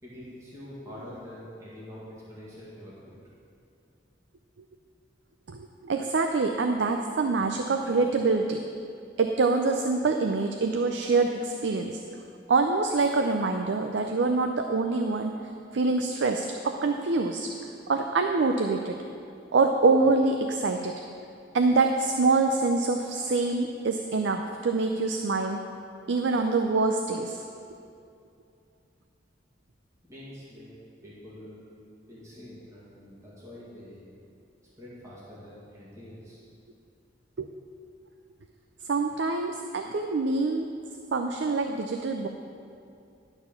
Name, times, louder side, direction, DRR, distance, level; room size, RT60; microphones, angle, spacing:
voice 1, 0.0-3.0 30.1-30.7 31.0-31.7 32.1-34.0 34.8-36.4, left 1 dB, 15° right, -9 dB, 2.0 m, -45 dB
voice 2, 5.5-8.6 9.2-12.0 12.5-15.4 15.7-17.5 17.9-19.0 19.5-20.9 21.5-25.6 26.1-27.4 37.4-37.5 38.9-40.7 41.1-42.3, right 3 dB, 75° right, 5 dB, 0.5 m, -25 dB
11.5 x 4.4 x 6.9 m, 2.5 s
head